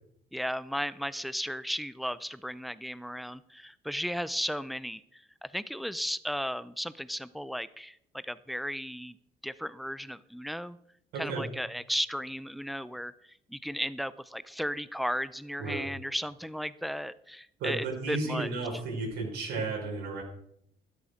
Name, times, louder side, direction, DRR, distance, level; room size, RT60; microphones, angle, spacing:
voice 1, 0.3-9.2 9.4-10.8 11.2-18.5, equal, ahead, 16 dB, 0.5 m, -35 dB
voice 2, 11.1-11.4 15.6-15.9 17.6-20.2, right 3 dB, 80° right, -1 dB, 5.1 m, -33 dB
12.5 x 10.0 x 5.0 m, 0.71 s
cardioid pair, 110°, 17 cm